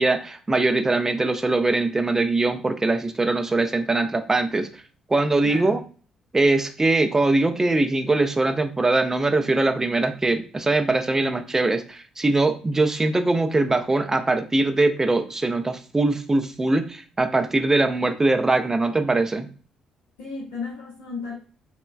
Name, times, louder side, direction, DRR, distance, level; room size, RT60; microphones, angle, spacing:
voice 1, 0.0-4.7 5.1-5.8 6.3-19.5, right 2 dB, 20° right, 0.4 m, -22 dB
voice 2, 5.4-5.8 20.2-21.4, left 4 dB, 70° left, 0.6 m, -34 dB
3.0 x 2.1 x 2.3 m
figure-of-eight pair, 40°, 2 cm